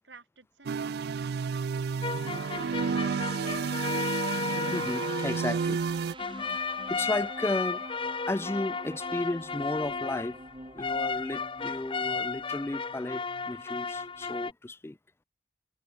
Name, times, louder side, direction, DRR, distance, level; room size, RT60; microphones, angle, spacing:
voice 1, 0.0-3.1, right 3 dB, 85° right, 4.8 m, -55 dB
sound 1, 0.7-6.1, right 5 dB, 60° right, 0.4 m, -31 dB
sound 2, 2.0-14.5, left 4 dB, 30° left, 0.9 m, -34 dB
voice 2, 4.7-5.8 6.2-7.8 8.3-10.4 10.7-15.0, left 2 dB, 15° left, 0.4 m, -34 dB
sound 3, 4.7-14.5, right 1 dB, 30° right, 5.0 m, -47 dB
head